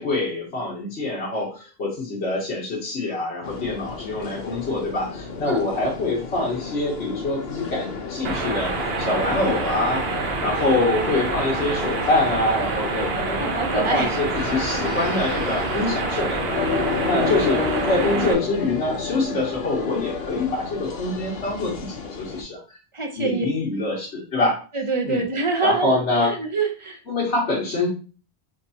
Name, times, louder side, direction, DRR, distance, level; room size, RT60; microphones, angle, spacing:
voice 1, 0.0-10.0 10.4-13.4 13.7-16.4 17.0-22.6 23.2-24.6 25.0-25.2 25.6-26.4 27.1-27.9, left 2 dB, 90° left, -4 dB, 1.7 m, -25 dB
sound 1, 3.4-22.4, left 4 dB, 70° left, 1.0 m, -32 dB
sound 2, 8.2-18.3, right 3 dB, 70° right, 1.0 m, -27 dB
voice 2, 13.4-14.1 17.1-18.4 22.9-23.5 24.7-27.0, right 3 dB, 35° right, 3 dB, 0.7 m, -26 dB
5.1 x 3.2 x 2.8 m, 0.35 s
omnidirectional pair, 1.1 m